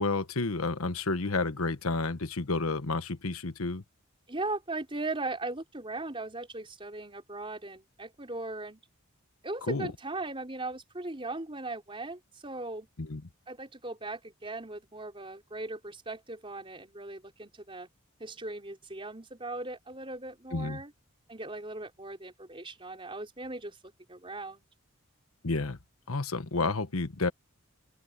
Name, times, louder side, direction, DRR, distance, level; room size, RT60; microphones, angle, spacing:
voice 1, 0.0-3.8 9.7-9.9 13.0-13.2 20.5-20.8 25.4-25.8 26.1-27.3, left 3 dB, 85° left, 1.3 m, -30 dB
voice 2, 4.3-8.8 9.4-12.9 13.5-17.9 18.2-20.9 21.3-23.8 24.1-24.6, right 2 dB, 25° right, 4.6 m, -38 dB
open air
head